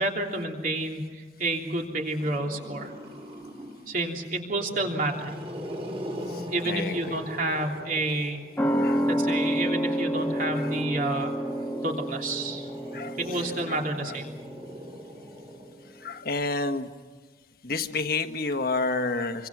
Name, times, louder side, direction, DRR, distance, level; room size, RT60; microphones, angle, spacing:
voice 1, 0.0-2.9 3.9-5.4 6.5-8.4 9.1-11.3 11.8-12.7 13.2-14.4, right 2 dB, 45° right, 1 dB, 3.3 m, -29 dB
Growling, 2.2-3.9 4.5-8.6 9.6-16.1, equal, 30° right, 4.9 m, -41 dB
voice 2, 6.3-7.2 8.8-9.1 10.6-10.7 12.9-13.2 13.7-13.8 14.1-14.2 16.0-16.9 17.6-19.5, left 3 dB, 55° left, 8 dB, 1.4 m, -30 dB
sound 1, 8.6-15.6 15.9-16.0, equal, 10° left, 1.5 m, -29 dB
26.5 x 25.0 x 6.1 m, 1.5 s
head